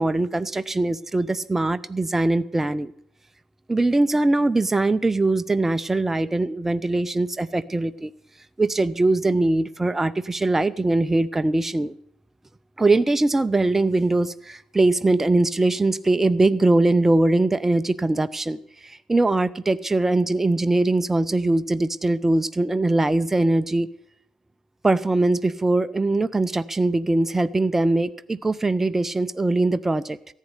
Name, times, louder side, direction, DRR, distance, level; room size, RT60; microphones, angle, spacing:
voice 1, 0.0-2.9 3.7-8.1 8.6-11.9 12.8-23.9 24.8-30.2, right 2 dB, 15° right, 13 dB, 0.5 m, -21 dB
14.5 x 8.3 x 7.9 m, 0.72 s
figure-of-eight pair, 45°, 2 cm